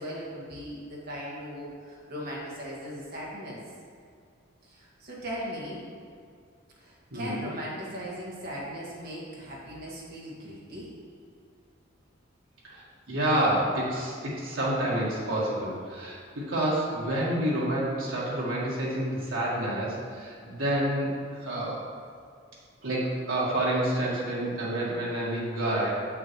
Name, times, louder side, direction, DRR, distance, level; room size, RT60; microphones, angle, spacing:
voice 1, 0.0-3.6 4.7-5.9 6.8-10.9, equal, 50° right, -5 dB, 1.8 m, -38 dB
voice 2, 7.1-7.5 12.6-21.8 22.8-25.9, right 1 dB, 80° right, -6 dB, 1.7 m, -28 dB
7.6 x 5.9 x 3.1 m, 2.3 s
head